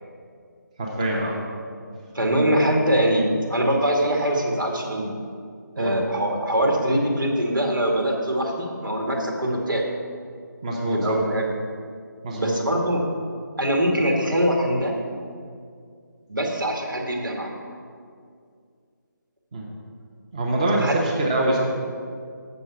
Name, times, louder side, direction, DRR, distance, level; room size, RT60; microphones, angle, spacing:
voice 1, 0.8-1.4 5.8-6.0 10.6-11.2 12.2-12.5 19.5-19.7 20.3-21.6, right 1 dB, 20° right, -2 dB, 0.8 m, -24 dB
voice 2, 2.1-5.1 5.8-9.8 10.9-11.5 12.3-13.0 13.6-14.9 16.3-17.5 20.8-20.9, right 1 dB, 90° right, 1 dB, 2.1 m, -23 dB
8.2 x 6.7 x 6.2 m, 2.2 s
figure-of-eight pair, 170°, 11 cm